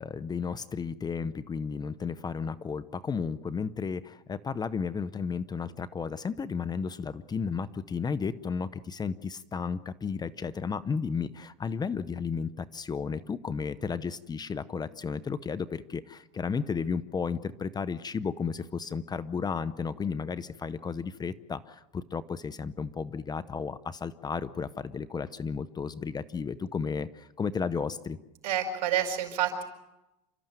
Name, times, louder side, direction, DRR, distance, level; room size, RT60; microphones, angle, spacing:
voice 1, 0.0-28.2, left 5 dB, 20° left, 15 dB, 0.8 m, -33 dB
voice 2, 28.4-29.6, right 9 dB, 85° right, 5 dB, 5.1 m, -28 dB
29.0 x 13.5 x 9.2 m, 0.95 s
supercardioid pair, 125°, 21 cm